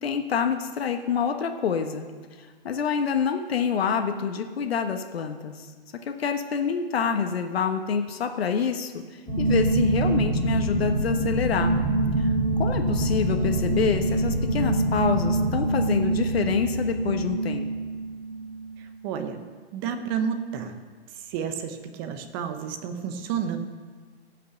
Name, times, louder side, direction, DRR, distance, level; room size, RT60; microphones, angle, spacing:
voice 1, 0.0-2.1 2.6-5.6 6.1-8.9 9.4-11.7 12.2-17.7, left 6 dB, 70° left, 5 dB, 1.3 m, -27 dB
sound 1, 9.3-18.7, right 2 dB, 5° left, 3.8 m, -25 dB
voice 2, 19.0-19.4 19.7-20.7 21.3-23.6, right 7 dB, 25° right, 7 dB, 0.9 m, -30 dB
17.0 x 5.8 x 7.1 m, 1.5 s
hypercardioid pair, 155°, 31 cm